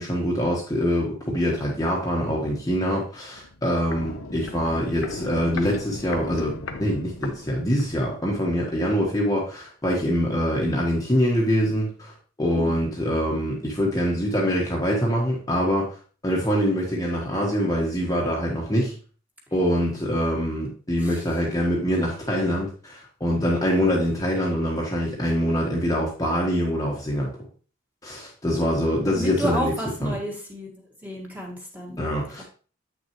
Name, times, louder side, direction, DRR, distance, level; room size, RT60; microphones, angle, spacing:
voice 1, 0.0-12.1 12.4-16.0 16.2-18.9 19.5-27.3 28.0-29.7 30.0-30.1 32.0-32.4, equal, 15° left, -3 dB, 1.2 m, -24 dB
Walk footsteps, 3.3-8.0 8.3-8.4, left 3 dB, 80° left, 0.9 m, -37 dB
voice 2, 29.1-30.7 31.0-32.0 32.4-32.5, equal, 10° right, -2 dB, 1.7 m, -31 dB
8.1 x 6.1 x 3.0 m, 0.39 s
head